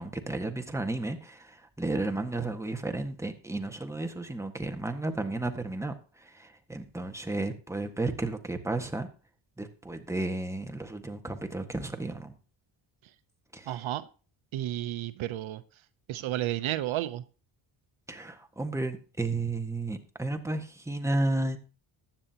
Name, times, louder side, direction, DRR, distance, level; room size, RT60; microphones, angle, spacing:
voice 1, 0.0-9.1 9.6-12.3 13.5-13.9 18.1-21.6, right 2 dB, 5° right, 5 dB, 1.6 m, -33 dB
voice 2, 13.7-14.0 14.5-15.6 16.1-17.2, right 14 dB, 75° right, 13 dB, 0.8 m, -32 dB
15.0 x 10.0 x 2.9 m, 0.36 s
cardioid pair, 80°, 49 cm